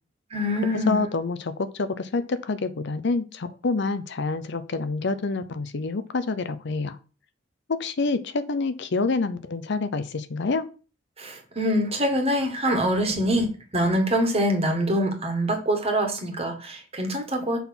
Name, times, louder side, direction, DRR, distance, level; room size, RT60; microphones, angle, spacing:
voice 1, 0.3-1.0 11.2-17.6, equal, 30° right, 4 dB, 1.6 m, -24 dB
voice 2, 0.9-7.0 7.7-10.7, left 3 dB, 65° left, 11 dB, 0.6 m, -27 dB
5.8 x 4.3 x 5.8 m, 0.36 s
head